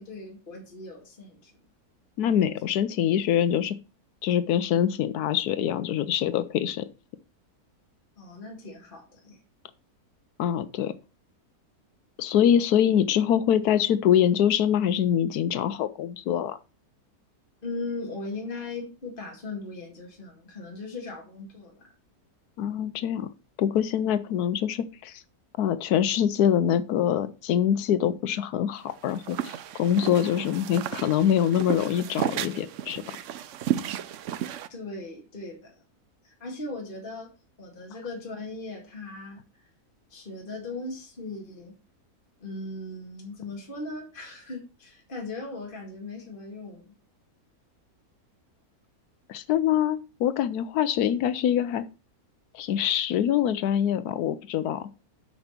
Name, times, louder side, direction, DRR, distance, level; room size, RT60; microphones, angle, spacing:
voice 1, 0.0-1.5 8.2-9.4 17.6-21.9 34.7-35.8 36.2-37.3 37.6-39.4 40.1-41.7 42.4-46.9, left 2 dB, 35° left, 0 dB, 2.4 m, -38 dB
voice 2, 2.2-3.8 4.2-6.9 10.4-11.0 12.2-16.6 22.6-23.3 23.6-25.2 25.6-33.0 49.3-51.8 52.5-54.9, left 9 dB, 80° left, 14 dB, 1.2 m, -24 dB
sound 1, 28.9-34.7, right 10 dB, 65° right, 0.8 m, -33 dB
8.7 x 5.4 x 5.8 m, 0.32 s
omnidirectional pair, 1.6 m